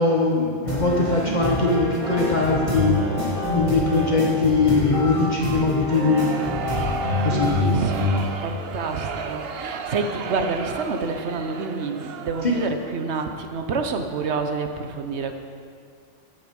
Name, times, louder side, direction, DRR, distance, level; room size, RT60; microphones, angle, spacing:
voice 1, 0.0-3.0 3.5-6.3 7.2-7.5 12.4-12.6, left 3 dB, 45° left, -2 dB, 1.1 m, -21 dB
sound 1, 0.6-8.2, left 1 dB, 30° right, 3.6 m, -26 dB
sound 2, 5.8-13.0, right 5 dB, 70° right, 0.9 m, -34 dB
voice 2, 7.2-15.3, right 4 dB, 85° right, 6 dB, 1.2 m, -28 dB
12.5 x 7.8 x 5.3 m, 2.3 s
omnidirectional pair, 1.1 m